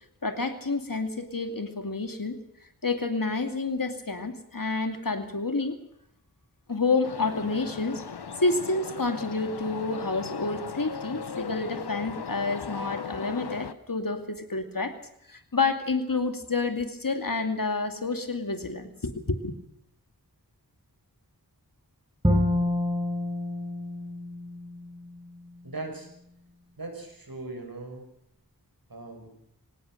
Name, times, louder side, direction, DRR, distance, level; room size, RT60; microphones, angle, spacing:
voice 1, 0.2-2.4 2.8-5.8 6.7-8.0 8.4-14.9 15.3-19.5, left 3 dB, 60° left, 7 dB, 2.4 m, -29 dB
sound 1, 7.0-13.7, left 6 dB, 80° left, 0.9 m, -37 dB
Bowed string instrument, 22.2-25.4, left 1 dB, 15° right, 3.8 m, -28 dB
voice 2, 25.6-26.1 26.8-28.0 28.9-29.3, right 2 dB, 65° right, 3 dB, 6.9 m, -39 dB
24.0 x 18.0 x 6.5 m, 0.74 s
wide cardioid pair, 55°, 38 cm